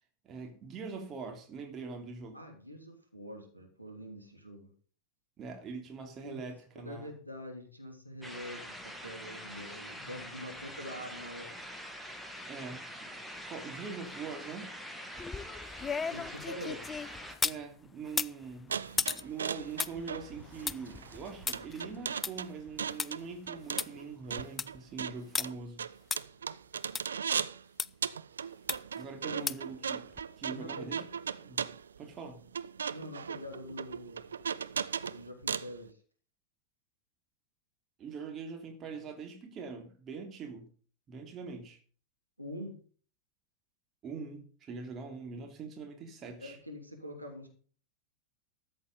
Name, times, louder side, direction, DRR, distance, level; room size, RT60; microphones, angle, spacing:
voice 1, 0.2-2.4 5.4-7.1 10.0-10.3 12.4-13.1 13.5-14.7 17.4-25.8 29.0-30.0 30.4-31.1 31.4-31.7 32.0-32.5 38.0-40.7 41.1-41.8 44.0-46.6, right 5 dB, 30° right, 2.9 m, -43 dB
voice 2, 2.3-4.7 6.2-6.4 6.7-11.5 16.1-16.9 29.2-29.5 30.5-30.9 32.9-34.3 35.1-36.0 42.4-42.8 46.4-47.5, equal, 90° right, 3.1 m, -45 dB
sound 1, 8.2-17.4, equal, ahead, 2.2 m, -45 dB
sound 2, 15.2-17.6 18.1-23.1 23.5-23.6 23.8-23.9 24.3-24.8 25.3-25.5 26.1-26.2 26.9-27.0 27.8-27.9 28.7-29.0 29.5-29.7 30.2-30.3, left 5 dB, 15° left, 0.5 m, -36 dB
sound 3, 18.7-27.6 28.0-35.7, right 7 dB, 70° right, 0.6 m, -37 dB
13.5 x 8.1 x 5.3 m
figure-of-eight pair, 90°, 0 cm